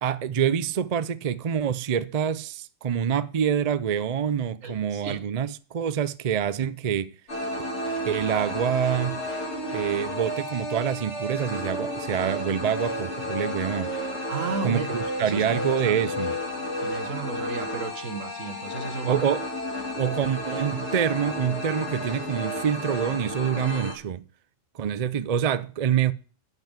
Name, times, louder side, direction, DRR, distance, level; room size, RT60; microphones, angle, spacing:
voice 1, 0.0-7.1 8.0-9.2 9.7-13.9 14.6-16.4 19.0-19.5 20.0-24.2 24.7-26.1, right 8 dB, 50° right, 0.5 m, -26 dB
voice 2, 4.6-5.2 14.3-16.0 16.8-19.2, right 5 dB, 75° right, 1.8 m, -34 dB
sound 1, 7.3-23.9, left 1 dB, 55° left, 3.1 m, -32 dB
10.5 x 6.0 x 8.9 m
omnidirectional pair, 1.4 m